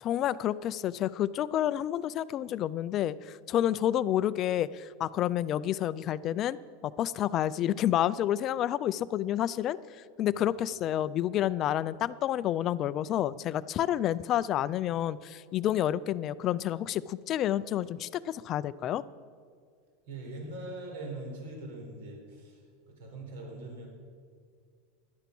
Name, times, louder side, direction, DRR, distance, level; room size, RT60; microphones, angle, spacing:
voice 1, 0.0-6.6 6.8-19.0, left 11 dB, 25° left, 17 dB, 0.4 m, -29 dB
voice 2, 20.1-23.9, right 2 dB, 70° right, 1 dB, 4.5 m, -42 dB
17.0 x 11.5 x 6.1 m, 2.1 s
supercardioid pair, 175°, 0 cm